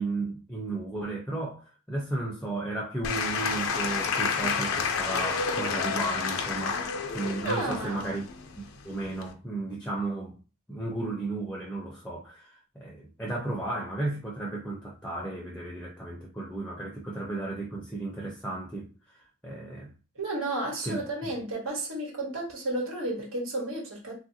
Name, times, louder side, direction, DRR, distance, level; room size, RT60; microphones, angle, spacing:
voice 1, 0.0-8.3 8.8-10.4 10.7-19.9 20.8-21.3, right 2 dB, 5° left, 0.4 m, -34 dB
Applause / Crowd, 3.0-9.3, left 5 dB, 85° left, 0.5 m, -30 dB
voice 2, 7.4-8.1 20.1-24.1, right 2 dB, 90° right, 1.3 m, -32 dB
3.3 x 2.4 x 2.7 m
head